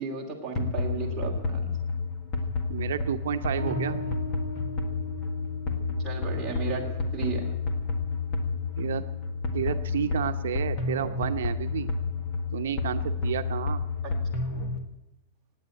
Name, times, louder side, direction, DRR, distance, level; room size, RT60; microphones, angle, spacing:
voice 1, 0.0-1.7 6.0-6.8 7.1-7.5 14.0-14.1, right 5 dB, 10° right, -4 dB, 2.6 m, -34 dB
sound 1, 0.5-14.8, left 3 dB, 25° left, 1.6 m, -30 dB
voice 2, 2.7-4.0 8.8-9.1 9.5-11.9 12.5-13.8, right 9 dB, 85° right, 8 dB, 0.8 m, -31 dB
Bass guitar, 3.6-10.7, right 1 dB, 50° left, 6.8 m, -43 dB
16.0 x 9.4 x 9.0 m, 0.93 s
supercardioid pair, 175°, 0 cm